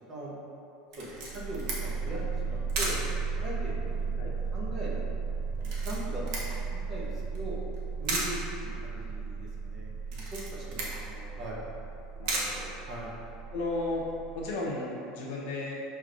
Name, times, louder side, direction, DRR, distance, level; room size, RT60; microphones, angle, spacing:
voice 1, 0.1-0.4 1.0-3.0 3.4-4.2 4.5-5.0 5.6-7.6 8.0-11.6 12.8-13.1, equal, 35° right, -5 dB, 1.0 m, -41 dB
Camera, 0.9-13.4, right 2 dB, 60° right, 0.9 m, -39 dB
sound 1, 1.1-14.5, right 4 dB, 85° right, 0.3 m, -35 dB
voice 2, 10.8-11.4 12.2-12.7 13.5-14.1 14.3-15.7, left 2 dB, 75° left, -3 dB, 0.9 m, -35 dB
6.0 x 3.4 x 2.6 m, 2.8 s
supercardioid pair, 145°, 0 cm